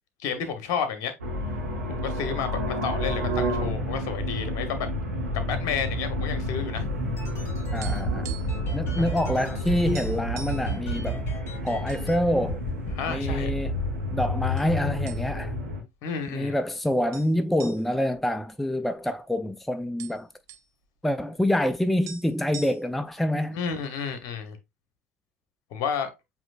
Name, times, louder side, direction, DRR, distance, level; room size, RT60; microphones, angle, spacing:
voice 1, 0.2-1.1 1.9-4.9 5.3-6.9 9.0-9.1 12.9-13.5 16.0-16.5 23.5-24.6 25.7-26.1, left 7 dB, 55° left, 1.1 m, -31 dB
sound 1, 1.2-15.8, left 1 dB, 80° right, 1.2 m, -30 dB
sound 2, 6.8-12.2 12.5-12.9 13.3-14.7, right 4 dB, 35° left, 2.1 m, -33 dB
voice 2, 7.7-8.3 8.7-11.2 11.6-12.6 13.1-13.7 14.1-15.6 16.3-20.3 21.0-23.6, left 1 dB, ahead, 0.3 m, -26 dB
sound 3, 7.8-8.7 9.0-9.1 9.5-9.6 9.9-10.7 11.4-12.0 12.4-12.6 13.3-13.9 14.6-14.7 15.1-15.6 15.9-16.0 17.1-19.2 19.5-19.6 19.8-20.7 21.7-21.8 22.1-23.1, right 9 dB, 45° right, 0.8 m, -43 dB
7.4 x 2.7 x 2.5 m
figure-of-eight pair, 70°, 8 cm